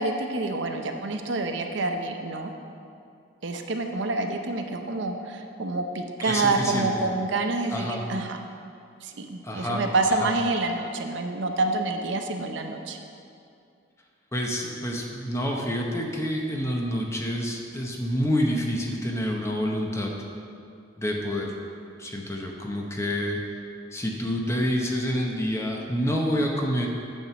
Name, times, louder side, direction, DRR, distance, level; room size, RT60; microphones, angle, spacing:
voice 1, 0.0-2.5 3.4-8.4 9.0-13.0, right 2 dB, 60° right, 5 dB, 0.6 m, -27 dB
voice 2, 6.2-6.9 7.7-8.0 9.4-9.8 10.2-10.3 14.3-20.1 21.0-21.5 22.0-23.4 23.9-26.9, equal, 15° left, 0 dB, 0.8 m, -28 dB
9.0 x 4.5 x 6.8 m, 2.4 s
head